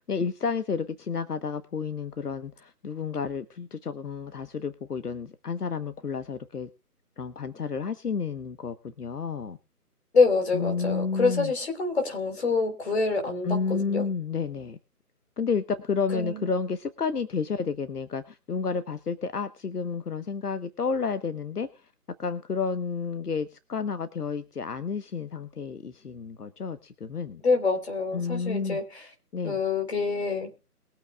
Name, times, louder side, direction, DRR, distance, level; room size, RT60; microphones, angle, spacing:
voice 1, 0.1-6.7 7.2-9.6 10.5-11.5 13.4-14.8 15.4-21.9 22.2-27.4 28.1-28.8 29.3-29.6, left 5 dB, 75° left, 11 dB, 1.3 m, -31 dB
voice 2, 10.1-14.0 16.1-16.5 27.4-29.0 29.4-30.5, left 4 dB, 45° left, 4 dB, 3.8 m, -26 dB
22.5 x 8.6 x 2.4 m, 0.31 s
figure-of-eight pair, 165°, 46 cm